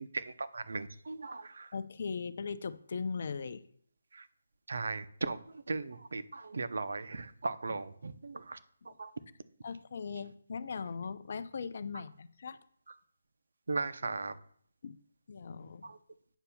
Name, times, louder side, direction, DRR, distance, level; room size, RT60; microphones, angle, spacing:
voice 1, 0.0-1.7 4.1-4.3 4.7-8.6 8.8-9.1 13.7-14.4 15.8-16.0, right 3 dB, 70° right, 11 dB, 0.7 m, -37 dB
voice 2, 1.7-3.6 9.6-12.6 14.8-15.0 15.3-15.9, left 5 dB, 50° left, 12 dB, 0.6 m, -39 dB
8.9 x 6.8 x 2.3 m, 0.62 s
figure-of-eight pair, 155°, 0 cm